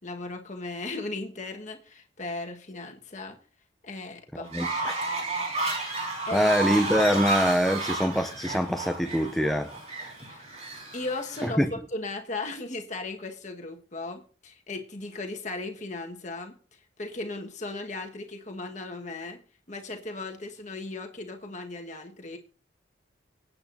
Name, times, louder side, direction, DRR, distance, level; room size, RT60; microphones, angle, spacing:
voice 1, 0.0-3.4 3.8-4.5 6.2-6.5 10.3-10.4 10.9-11.6 11.9-16.6 17.0-19.4 19.7-22.4, left 2 dB, 40° left, 1.5 m, -36 dB
voice 2, 4.4-4.9 6.3-9.8 11.4-11.7, equal, ahead, 0.5 m, -24 dB
Fowl, 4.5-11.5, right 3 dB, 35° right, 4.7 m, -32 dB
24.5 x 8.7 x 2.7 m
head